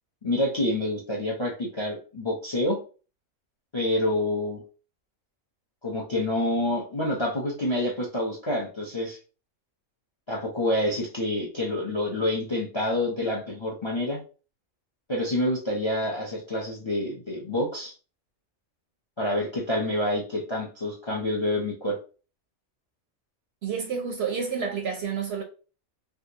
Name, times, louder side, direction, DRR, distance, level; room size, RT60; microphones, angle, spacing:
voice 1, 0.2-2.8 3.7-4.6 5.8-9.2 10.3-14.2 15.1-17.9 19.2-22.0, left 1 dB, 40° left, 0.4 m, -27 dB
voice 2, 23.6-25.4, right 6 dB, 65° right, 0.7 m, -29 dB
3.5 x 2.5 x 2.8 m
omnidirectional pair, 1.4 m